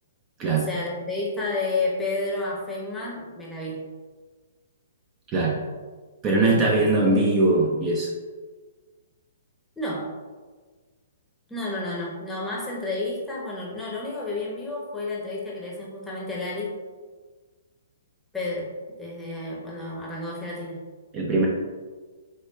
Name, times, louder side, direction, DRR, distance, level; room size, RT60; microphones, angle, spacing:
voice 1, 0.5-3.8 6.5-7.2 9.8-10.1 11.5-16.7 18.3-18.7 19.0-20.8, left 2 dB, 5° left, -5 dB, 0.8 m, -31 dB
voice 2, 6.2-8.1 21.1-21.5, right 2 dB, 25° right, -2 dB, 0.5 m, -21 dB
4.5 x 2.2 x 2.3 m, 1.4 s
hypercardioid pair, 125°, 0 cm